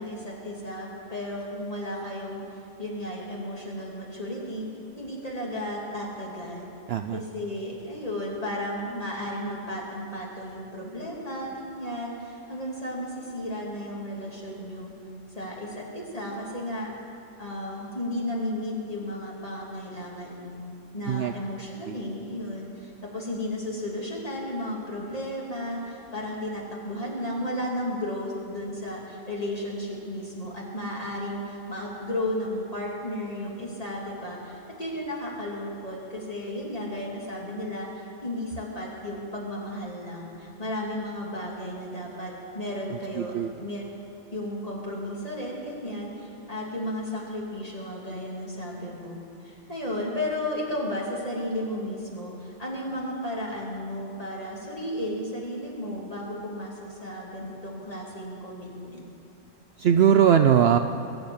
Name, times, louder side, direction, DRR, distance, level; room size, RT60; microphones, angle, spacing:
voice 1, 0.0-4.7 5.0-6.7 7.1-14.9 15.3-16.9 17.4-20.5 20.9-43.3 43.6-43.8 44.3-49.2 49.4-59.0, left 1 dB, 30° left, -4 dB, 3.0 m, -34 dB
voice 2, 6.9-7.2 21.1-21.3 21.9-22.0 42.9-43.5 59.8-60.8, right 8 dB, 60° right, 7 dB, 0.7 m, -20 dB
21.0 x 8.0 x 8.7 m, 2.9 s
omnidirectional pair, 1.3 m